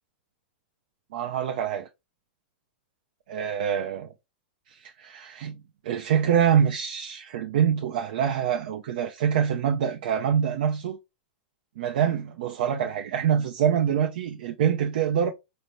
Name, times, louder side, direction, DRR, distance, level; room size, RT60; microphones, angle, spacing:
voice 1, 1.1-1.9 3.3-4.1 4.7-5.6 5.8-11.0 11.8-15.3, right 8 dB, 65° right, 0.5 m, -25 dB
4.1 x 2.7 x 3.0 m
hypercardioid pair, 110°, 5 cm